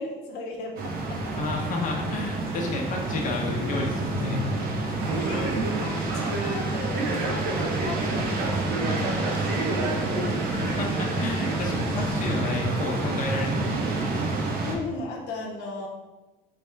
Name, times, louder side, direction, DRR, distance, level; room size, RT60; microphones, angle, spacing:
voice 1, 0.0-1.4 5.1-10.3 14.6-15.9, left 3 dB, 85° left, -1 dB, 0.8 m, -37 dB
sound 1, 0.8-14.8, right 2 dB, 60° right, 1.0 m, -28 dB
voice 2, 1.4-4.4 10.4-13.8, left 3 dB, 50° left, 0 dB, 1.0 m, -31 dB
Male speech man speaking, 5.0-12.3, right 2 dB, 80° right, 1.2 m, -32 dB
3.5 x 3.4 x 4.5 m, 1.1 s
cardioid pair, 110°, 17 cm